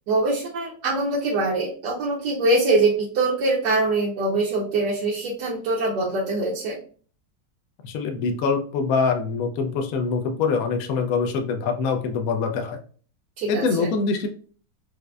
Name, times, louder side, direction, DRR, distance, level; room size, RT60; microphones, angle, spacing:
voice 1, 0.1-6.8 13.4-13.9, right 2 dB, 75° right, -4 dB, 1.3 m, -23 dB
voice 2, 7.8-12.8 13.5-14.3, left 5 dB, 70° left, 5 dB, 0.9 m, -24 dB
4.9 x 2.1 x 2.3 m, 0.42 s
omnidirectional pair, 1.9 m